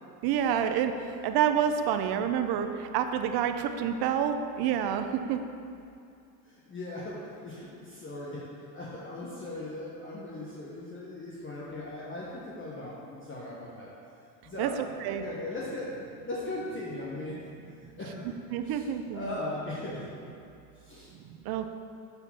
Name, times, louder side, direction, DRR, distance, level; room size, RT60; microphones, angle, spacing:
voice 1, 0.2-0.9 1.2-5.4 14.6-14.7 15.0-15.2 18.5-19.3 21.2-21.7, right 9 dB, 55° right, 8 dB, 0.7 m, -28 dB
voice 2, 6.4-13.9 14.4-16.0 16.2-17.4 17.7-18.3 18.6-18.8 19.1-20.0 20.8-21.1, left 2 dB, 25° left, -5 dB, 1.3 m, -39 dB
8.0 x 4.9 x 5.8 m, 2.5 s
supercardioid pair, 100°, 47 cm